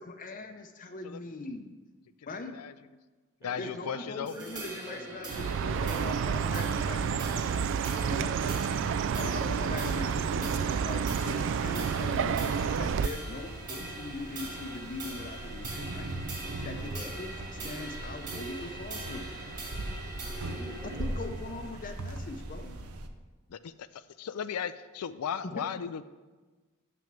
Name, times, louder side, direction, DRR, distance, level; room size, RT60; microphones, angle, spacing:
voice 1, 0.0-1.7 2.3-2.6 3.6-7.8 8.1-8.3 9.2-16.1 16.6-19.3 21.0-22.8 25.4-25.6, left 3 dB, 40° left, 5 dB, 0.6 m, -41 dB
voice 2, 2.3-2.7 3.4-4.4 23.5-26.1, left 8 dB, 80° left, 12 dB, 0.4 m, -36 dB
voice 3, 3.4-6.0 7.7-8.8 9.2-9.5 16.9-17.1 20.5-21.2, right 1 dB, 15° right, 1 dB, 1.4 m, -46 dB
sound 1, 4.3-22.9, right 2 dB, 35° right, 2.6 m, -43 dB
Chirp tweet, 5.3-13.1, right 6 dB, 60° right, 0.3 m, -29 dB
sound 2, 11.8-23.1, right 1 dB, 75° right, 0.8 m, -40 dB
6.9 x 6.1 x 7.4 m, 1.3 s
head